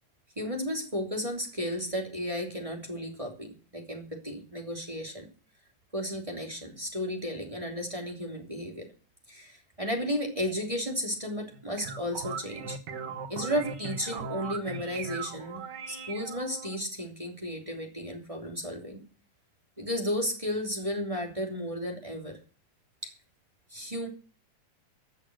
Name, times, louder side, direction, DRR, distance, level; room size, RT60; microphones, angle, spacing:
voice 1, 0.3-5.3 5.9-8.9 9.3-12.8 13.3-15.6 15.9-19.1 19.8-22.4 23.0-23.1 23.7-24.1, equal, 10° right, 1 dB, 3.0 m, -33 dB
sound 1, 11.5-16.8, right 5 dB, 55° right, 1.2 m, -39 dB
15.5 x 8.2 x 6.2 m, 0.38 s
omnidirectional pair, 3.3 m